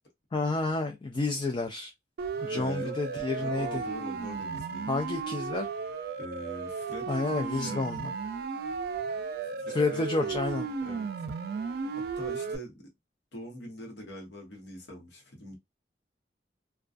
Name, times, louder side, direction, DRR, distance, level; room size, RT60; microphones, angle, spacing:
voice 1, 0.3-1.9 2.4-3.8 4.9-5.7 7.1-8.1 9.7-10.7, left 3 dB, 25° left, 0.3 m, -30 dB
Siren, 2.2-12.6, right 5 dB, 60° right, 0.3 m, -34 dB
voice 2, 2.5-3.0 3.4-4.9 6.2-7.9 9.4-10.3 10.8-11.1 12.2-12.8 13.3-15.6, left 1 dB, 70° left, 0.9 m, -42 dB
2.4 x 2.2 x 2.3 m
head